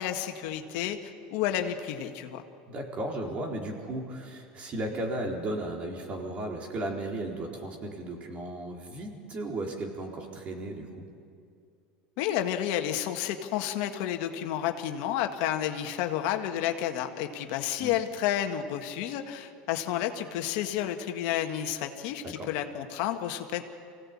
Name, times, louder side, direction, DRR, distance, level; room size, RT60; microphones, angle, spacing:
voice 1, 0.0-2.4 12.2-23.6, left 11 dB, 70° left, 5 dB, 1.7 m, -31 dB
voice 2, 2.7-11.1 17.8-17.9 22.2-22.5, right 1 dB, 40° right, 0 dB, 4.2 m, -35 dB
25.0 x 17.0 x 8.6 m, 2.4 s
supercardioid pair, 110°, 4 cm